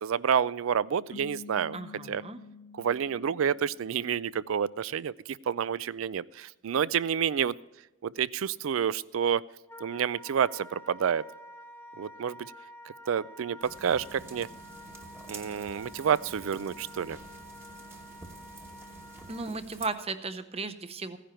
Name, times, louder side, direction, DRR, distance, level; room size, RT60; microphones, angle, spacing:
voice 1, 0.0-1.8 2.1-2.2 2.8-5.1 5.5-7.5 8.0-9.4 9.8-11.2 12.0-12.4 13.1-14.5 15.3-17.2, right 8 dB, 85° right, 20 dB, 0.4 m, -29 dB
sound 1, 1.1-4.4, left 5 dB, 50° left, 0.5 m, -48 dB
voice 2, 1.7-2.4 19.3-21.2, right 3 dB, 30° right, 10 dB, 0.8 m, -35 dB
Wind instrument woodwind instrument, 9.7-19.6, equal, 10° left, 1.0 m, -49 dB
sound 2, 13.6-19.9, right 2 dB, 10° right, 1.1 m, -48 dB
15.5 x 10.0 x 4.4 m, 1.0 s
head